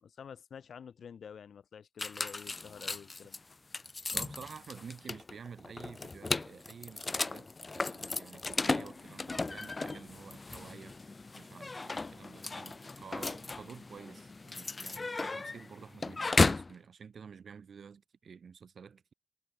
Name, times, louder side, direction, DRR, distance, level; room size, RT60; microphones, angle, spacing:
voice 1, 0.0-3.4 12.4-12.5, left 7 dB, 80° left, 2.7 m, -49 dB
sound 1, 2.0-16.7, left 3 dB, 35° left, 0.4 m, -35 dB
voice 2, 4.1-7.5 7.7-10.9 11.3-19.1, right 6 dB, 70° right, 3.1 m, -50 dB
cardioid pair, 80°, 0 cm